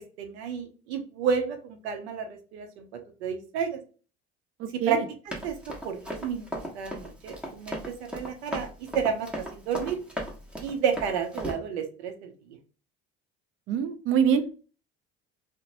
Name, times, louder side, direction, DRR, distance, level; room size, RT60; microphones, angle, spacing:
voice 1, 0.0-2.9 3.2-3.8 4.9-5.0 5.4-6.5 6.7-10.0 10.6-12.3, right 7 dB, 75° right, 6 dB, 0.7 m, -31 dB
voice 2, 4.6-5.0 13.7-14.5, right 7 dB, 40° right, 10 dB, 0.5 m, -25 dB
Run, 5.3-11.5, equal, 5° right, 0.8 m, -36 dB
2.9 x 2.2 x 2.5 m, 0.37 s
hypercardioid pair, 65°, 33 cm